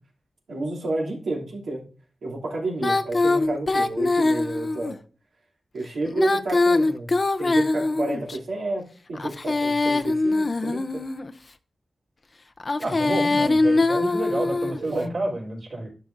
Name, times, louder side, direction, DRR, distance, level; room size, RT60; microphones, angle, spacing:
voice 1, 0.5-1.8 2.2-5.0 5.7-7.1 7.4-8.8 9.1-11.0 14.8-15.2, right 2 dB, 90° right, -2 dB, 2.7 m, -30 dB
Female singing, 2.8-4.9 6.1-8.4 9.2-11.3 12.6-14.8, left 3 dB, 40° left, 0.5 m, -23 dB
voice 2, 12.8-15.9, right 2 dB, 65° right, -3 dB, 3.8 m, -29 dB
11.5 x 5.3 x 2.6 m, 0.39 s
wide cardioid pair, 95°, 0 cm